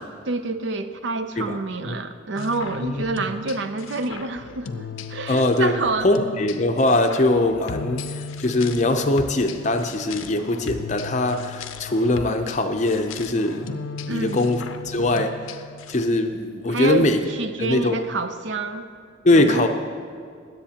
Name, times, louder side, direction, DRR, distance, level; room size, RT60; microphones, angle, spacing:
voice 1, 0.3-6.1 14.1-14.5 16.7-18.9 19.3-19.7, right 3 dB, 65° right, 9 dB, 0.5 m, -28 dB
sound 1, 2.4-16.1, left 4 dB, 90° left, 0.5 m, -36 dB
voice 2, 5.3-5.7 6.0-13.7 14.1-15.3 15.9-17.2 17.6-18.0 19.2-19.7, left 2 dB, 35° left, 6 dB, 0.6 m, -21 dB
20.0 x 7.8 x 2.9 m, 2.2 s
head